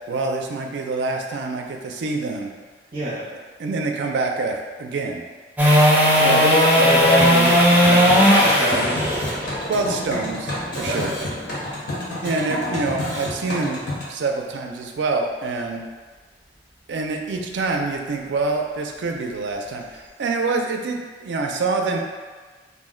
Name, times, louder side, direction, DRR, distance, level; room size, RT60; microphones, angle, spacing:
voice 1, 0.1-2.5 3.6-5.2 9.7-11.1 12.2-13.8 14.1-15.8 16.9-22.0, right 3 dB, 90° right, 2 dB, 0.4 m, -26 dB
voice 2, 2.9-3.3 6.2-8.9 10.9-11.3, equal, 50° right, -11 dB, 0.7 m, -25 dB
sound 1, 5.6-11.7 18.3-18.4, equal, 10° right, 0.4 m, -17 dB
sound 2, 7.0-14.1, left 1 dB, 85° left, 0.9 m, -30 dB
2.5 x 2.1 x 3.6 m, 1.4 s
head